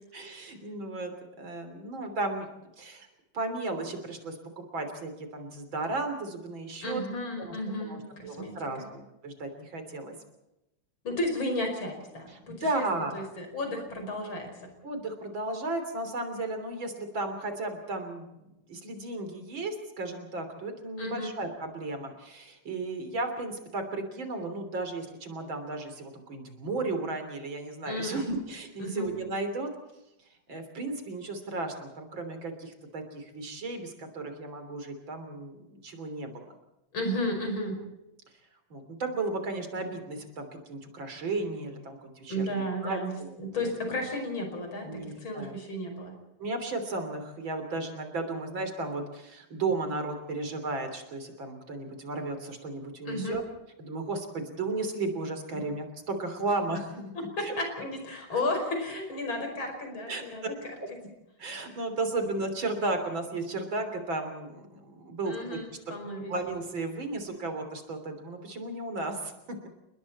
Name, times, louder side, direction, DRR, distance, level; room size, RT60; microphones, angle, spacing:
voice 1, 0.1-1.1 1.4-3.1 3.3-7.0 7.4-10.2 12.3-13.3 14.8-29.7 30.5-36.4 38.7-43.7 44.8-45.6 46.4-53.4 53.8-57.1 57.4-57.5 58.3-58.5 60.1-60.2 60.8-60.9 61.4-65.6 66.3-69.6, right 2 dB, 75° right, 7 dB, 4.1 m, -34 dB
voice 2, 6.8-8.9 11.0-12.9 13.1-14.5 21.0-21.3 27.8-28.2 28.8-29.1 36.9-37.8 42.3-46.1 53.0-53.4 55.5-55.6 57.4-60.5 65.2-66.3, left 1 dB, 80° left, 4 dB, 6.2 m, -33 dB
30.0 x 20.5 x 4.3 m, 0.92 s
omnidirectional pair, 2.1 m